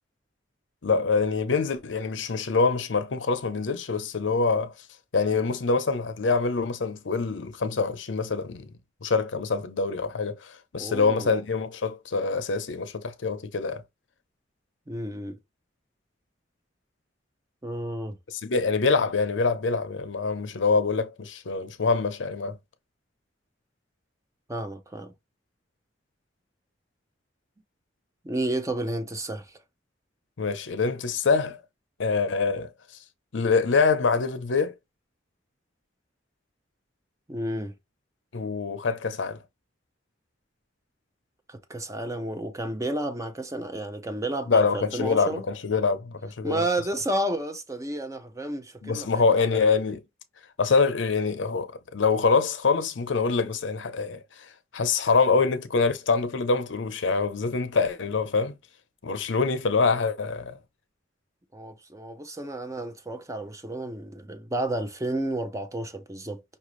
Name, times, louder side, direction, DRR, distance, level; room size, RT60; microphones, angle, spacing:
voice 1, 0.8-4.7 5.1-8.7 9.0-13.8 18.3-22.6 30.4-31.6 32.0-32.7 33.3-34.7 38.3-39.4 44.5-46.6 48.8-50.0 50.6-54.2 54.7-58.6 59.0-60.6, left 4 dB, 80° left, 0.7 m, -25 dB
voice 2, 10.8-11.3 14.9-15.4 17.6-18.2 24.5-25.1 28.2-29.6 37.3-37.7 41.5-45.4 46.4-49.6 61.5-66.4, right 1 dB, 15° right, 0.6 m, -31 dB
5.6 x 2.6 x 3.1 m
head